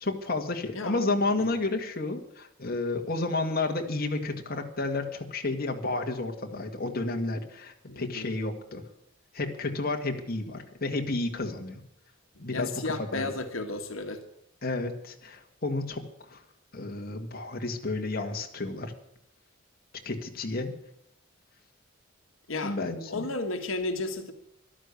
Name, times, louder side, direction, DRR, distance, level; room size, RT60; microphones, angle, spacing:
voice 1, 0.0-8.8 9.3-11.8 12.4-13.3 14.6-16.4 16.7-18.9 20.0-20.7 22.6-23.3, left 2 dB, 50° left, 3 dB, 1.9 m, -31 dB
voice 2, 7.9-8.3 12.5-14.2 22.5-22.8 23.1-24.3, left 2 dB, 80° left, 5 dB, 1.6 m, -33 dB
13.5 x 12.0 x 8.4 m, 0.78 s
head